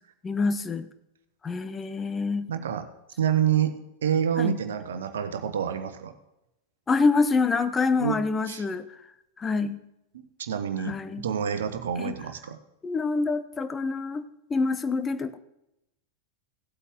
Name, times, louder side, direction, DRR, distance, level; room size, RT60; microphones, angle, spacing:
voice 1, 0.2-0.9 1.4-2.5 4.4-4.6 6.9-8.9 9.4-9.8 10.8-11.2 12.0-12.1 12.8-14.2 14.5-15.4, left 4 dB, 15° left, 11 dB, 0.8 m, -26 dB
voice 2, 2.5-2.9 3.2-6.1 8.0-8.2 8.5-8.6 10.1-12.6, right 8 dB, 65° right, 9 dB, 1.1 m, -28 dB
16.5 x 8.4 x 3.7 m, 0.85 s
figure-of-eight pair, 90°, 0 cm